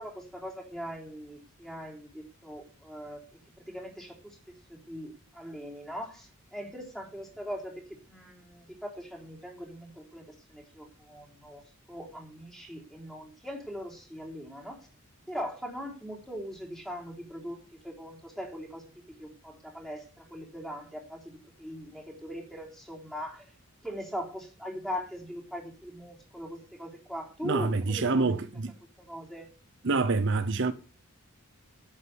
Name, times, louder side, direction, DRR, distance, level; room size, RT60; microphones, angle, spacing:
voice 1, 0.0-3.2 3.7-4.4 4.7-11.6 11.9-14.8 15.3-17.6 17.8-18.8 19.1-21.2 21.6-23.5 23.8-28.4 29.1-29.5, equal, ahead, 3.4 m, -40 dB
voice 2, 27.4-28.7 29.8-30.7, right 3 dB, 55° right, 0.8 m, -26 dB
9.6 x 8.5 x 8.1 m
head